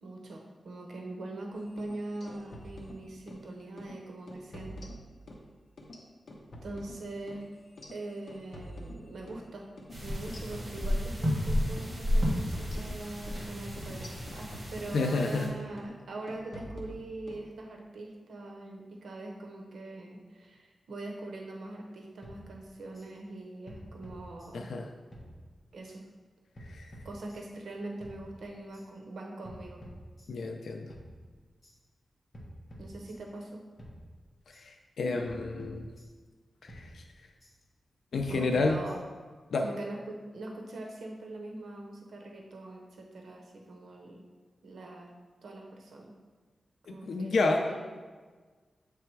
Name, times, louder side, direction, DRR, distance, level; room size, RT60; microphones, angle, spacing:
voice 1, 0.0-4.8 6.6-7.5 7.9-9.7 9.9-24.7 25.7-26.0 27.0-29.9 32.8-33.6 38.3-39.0 39.6-44.2 44.6-45.1 45.4-46.1 46.9-47.9, right 2 dB, 90° right, 1 dB, 0.7 m, -42 dB
sound 1, 1.7-3.5 3.8-4.0 4.3-5.5 5.8-9.5 9.8-9.9 10.3-11.4 11.8-12.0 12.3-15.5 15.8-16.0 16.3-17.4, equal, 55° left, 0.8 m, -47 dB
sound 2, 9.9-15.5, equal, 30° right, 1.2 m, -32 dB
voice 2, 14.9-15.5 24.5-24.8 26.7-26.9 30.3-30.9 34.6-35.9 36.6-37.0 38.1-38.8 39.5-39.6 46.9-47.6, left 3 dB, 90° left, 3 dB, 0.5 m, -30 dB
sound 3, 22.2-23.1 23.7-24.8 25.1-26.0 26.5-27.6 28.0-28.9 29.4-30.6 30.9-31.8 32.3-33.5 33.8-34.6 35.2-36.4 36.7-37.5 38.1-39.3, equal, 30° left, 1.0 m, -50 dB
7.5 x 3.4 x 4.6 m, 1.4 s
wide cardioid pair, 175°, 0 cm